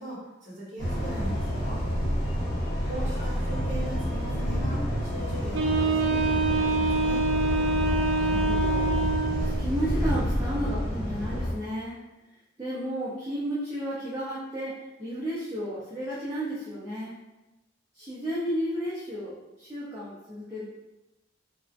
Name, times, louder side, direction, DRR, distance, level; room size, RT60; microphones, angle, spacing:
voice 1, 0.0-1.8 2.9-7.2, right 1 dB, 40° right, -10 dB, 1.1 m, -40 dB
sound 1, 0.8-11.5, equal, 35° left, 0.9 m, -29 dB
Wind instrument woodwind instrument, 5.5-9.6, right 3 dB, 90° right, 0.4 m, -26 dB
voice 2, 8.2-12.0 12.6-17.2 17.9-20.6, equal, 15° right, -10 dB, 0.5 m, -33 dB
2.6 x 2.1 x 2.4 m, 1.0 s
head